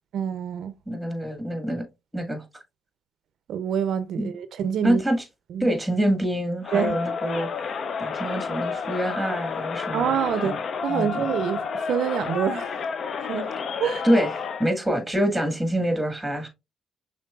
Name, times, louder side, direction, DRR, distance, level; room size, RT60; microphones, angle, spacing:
voice 1, 0.1-0.7 3.5-5.0 5.5-5.7 6.7-7.0 9.9-10.5 10.8-12.8 13.2-13.5 13.8-14.1, right 8 dB, 70° right, 0.5 m, -26 dB
voice 2, 0.9-1.8 2.1-2.4 4.2-4.3 4.8-5.2 5.6-7.5 8.0-10.1 10.4-10.6 10.9-11.3 14.0-16.5, equal, 5° right, 1.7 m, -25 dB
Crowd, 6.6-14.7, left 5 dB, 55° left, 0.5 m, -30 dB
5.9 x 3.7 x 2.3 m
cardioid pair, 90°, 0 cm